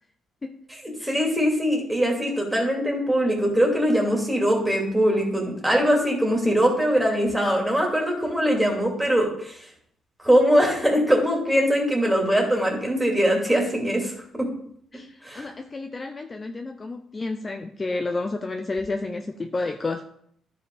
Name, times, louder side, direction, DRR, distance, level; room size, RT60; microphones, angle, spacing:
voice 1, 1.0-9.6 10.2-14.5 15.2-15.5, equal, 5° right, -1 dB, 2.6 m, -22 dB
voice 2, 14.9-20.0, left 3 dB, 30° left, 5 dB, 0.6 m, -31 dB
11.0 x 5.2 x 3.9 m, 0.66 s
cardioid pair, 90°, 0 cm